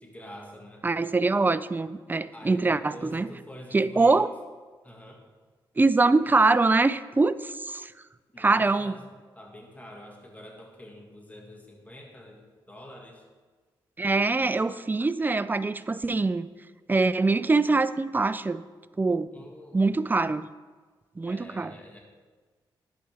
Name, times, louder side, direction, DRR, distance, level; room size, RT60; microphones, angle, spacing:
voice 1, 0.0-0.9 2.3-4.3 4.8-5.2 8.3-9.0 9.3-13.2 19.3-19.8 21.3-22.0, equal, 15° left, 0 dB, 1.9 m, -46 dB
voice 2, 0.8-3.3 3.7-4.3 5.8-7.9 8.4-9.0 14.0-16.5 16.9-18.6 19.0-19.3 19.7-20.5 21.2-21.7, right 3 dB, 20° right, 14 dB, 0.4 m, -23 dB
11.0 x 7.8 x 3.5 m, 1.4 s
cardioid pair, 55°, 9 cm